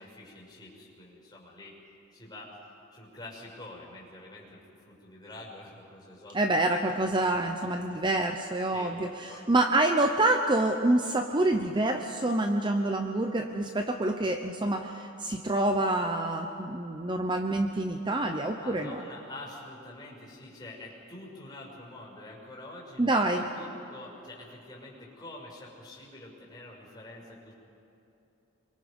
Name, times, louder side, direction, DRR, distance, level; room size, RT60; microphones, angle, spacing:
voice 1, 0.0-1.8 2.1-2.6 2.9-4.6 4.9-6.4 6.6-6.8 7.9-8.0 8.7-8.9 9.3-9.5 18.5-27.5, left 2 dB, 20° left, -3 dB, 5.9 m, -46 dB
voice 2, 6.3-19.0 23.0-23.5, right 2 dB, 25° right, 5 dB, 0.8 m, -27 dB
27.0 x 23.5 x 5.3 m, 2.9 s
head